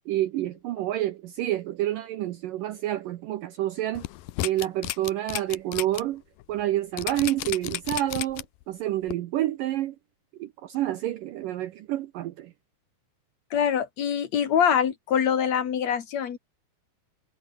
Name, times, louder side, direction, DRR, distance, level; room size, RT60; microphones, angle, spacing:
voice 1, 0.1-4.1 4.4-6.2 6.5-10.0 10.4-12.5, right 14 dB, 75° right, 2.1 m, -28 dB
sound 1, 3.9-6.0 6.4-6.5 7.0-8.6 9.1-9.2, left 17 dB, 75° left, 2.2 m, -32 dB
voice 2, 13.5-16.4, left 8 dB, 50° left, 2.7 m, -24 dB
omnidirectional pair, 4.8 m